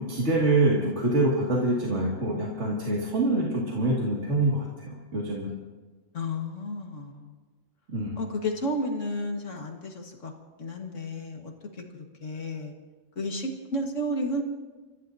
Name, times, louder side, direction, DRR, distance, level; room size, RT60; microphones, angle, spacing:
voice 1, 0.0-5.5 7.9-8.2, right 2 dB, 60° right, -4 dB, 2.6 m, -25 dB
voice 2, 6.1-7.3 8.2-10.3 10.6-12.7 13.2-14.4, left 1 dB, 65° left, 2 dB, 2.1 m, -32 dB
29.5 x 15.0 x 2.8 m, 1.3 s
omnidirectional pair, 1.4 m